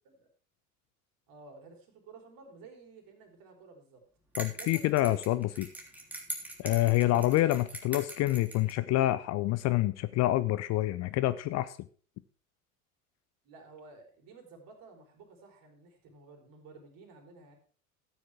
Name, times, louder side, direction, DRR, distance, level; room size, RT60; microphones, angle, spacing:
voice 1, 1.3-4.0 4.6-5.2 7.1-7.3 13.4-17.6, right 3 dB, 50° right, 3 dB, 3.8 m, -53 dB
sound 1, 4.3-8.8, right 1 dB, 5° right, 3.1 m, -42 dB
voice 2, 4.4-5.7 6.6-11.8, left 15 dB, 40° left, 15 dB, 0.6 m, -27 dB
13.5 x 9.4 x 3.5 m, 0.42 s
figure-of-eight pair, 75°, 44 cm